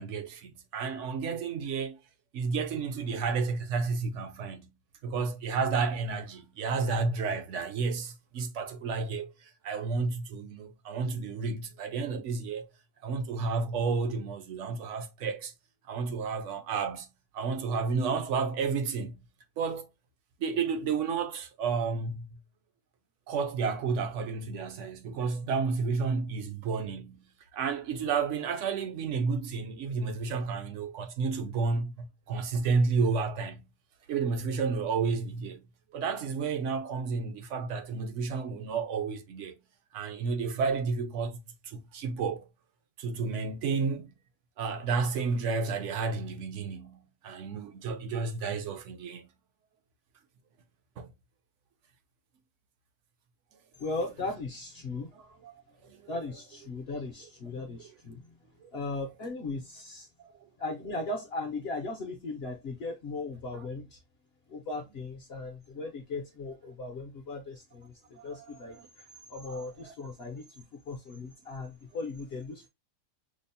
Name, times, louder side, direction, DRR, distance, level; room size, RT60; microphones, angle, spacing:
voice 1, 0.0-2.0 2.3-4.7 5.0-9.3 9.6-12.7 13.0-15.5 15.9-17.1 17.3-19.2 19.6-19.9 20.4-22.3 23.3-33.7 34.1-35.7 35.9-39.6 39.9-42.5 43.0-44.1 44.6-49.3 51.0-51.1 55.8-56.0 58.6-58.7 68.2-68.3 68.8-68.9 69.8-69.9, right 4 dB, 65° right, 0.8 m, -31 dB
voice 2, 53.8-55.1 56.1-58.3 58.7-60.1 60.6-64.0 64.5-72.7, left 3 dB, 60° left, 0.6 m, -38 dB
5.2 x 2.0 x 2.6 m
omnidirectional pair, 1.7 m